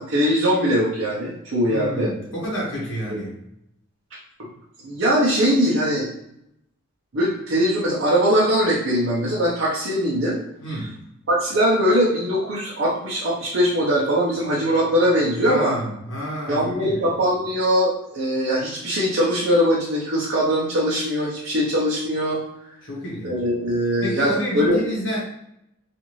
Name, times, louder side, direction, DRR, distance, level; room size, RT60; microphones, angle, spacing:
voice 1, 0.0-2.1 3.1-3.2 4.4-4.5 4.8-6.1 7.1-10.4 10.7-10.8 11.3-15.8 16.5-22.4 23.2-24.8, equal, 60° right, -6 dB, 0.7 m, -21 dB
voice 2, 1.6-3.3 10.6-10.9 15.4-17.0 22.8-23.4 24.0-25.2, equal, 65° left, -4 dB, 0.8 m, -29 dB
2.5 x 2.5 x 3.1 m, 0.78 s
head